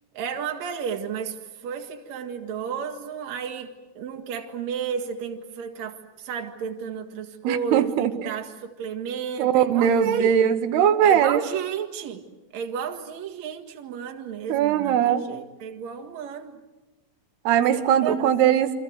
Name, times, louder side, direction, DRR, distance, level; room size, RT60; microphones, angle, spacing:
voice 1, 0.1-10.4 11.0-12.2 12.5-16.6 17.7-18.2, right 7 dB, 50° right, 4 dB, 2.8 m, -32 dB
voice 2, 7.4-8.4 9.4-11.4 14.5-15.2 17.5-18.7, right 9 dB, 85° right, 8 dB, 3.1 m, -20 dB
28.5 x 25.0 x 7.9 m, 1.1 s
omnidirectional pair, 4.6 m